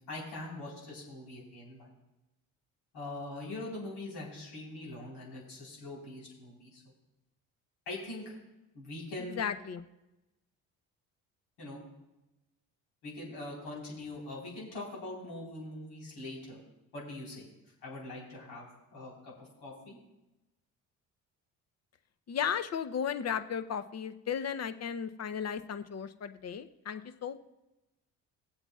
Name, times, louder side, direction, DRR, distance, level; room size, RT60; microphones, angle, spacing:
voice 1, 0.1-1.9 2.9-6.8 7.9-8.4 8.7-9.4 11.6-11.8 13.0-16.6 16.9-17.5 17.8-20.0, left 2 dB, 75° left, -4 dB, 4.0 m, -42 dB
voice 2, 9.4-9.8 22.3-27.4, left 7 dB, 40° left, 11 dB, 0.8 m, -35 dB
20.0 x 8.0 x 2.4 m, 0.98 s
hypercardioid pair, 55°, 41 cm